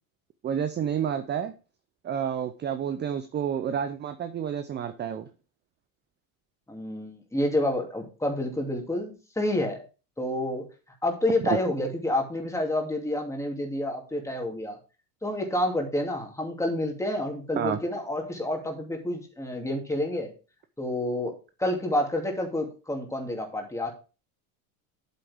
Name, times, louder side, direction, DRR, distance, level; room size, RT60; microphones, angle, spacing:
voice 1, 0.4-1.5 2.0-5.3 17.6-17.8, right 8 dB, 25° right, 11 dB, 0.6 m, -29 dB
voice 2, 6.7-9.8 10.2-10.6 11.0-14.8 15.2-20.3 20.8-23.9, left 1 dB, 5° left, 1 dB, 2.6 m, -29 dB
8.3 x 7.6 x 3.6 m, 0.34 s
supercardioid pair, 110°, 43 cm